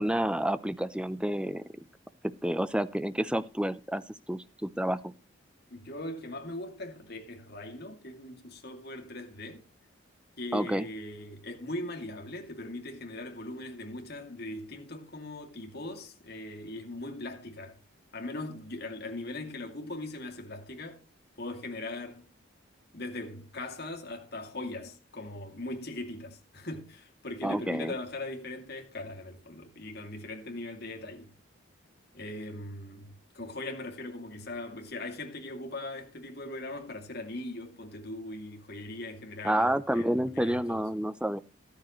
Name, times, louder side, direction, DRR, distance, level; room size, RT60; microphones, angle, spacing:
voice 1, 0.0-1.6 2.2-4.0 4.3-5.1 10.5-10.9 27.4-27.9 39.4-41.4, right 1 dB, 5° right, 0.6 m, -29 dB
voice 2, 5.7-9.6 10.4-17.8 18.1-21.0 21.4-22.3 22.9-31.3 32.1-40.8, left 2 dB, 50° left, 2.6 m, -40 dB
13.5 x 13.0 x 3.1 m
head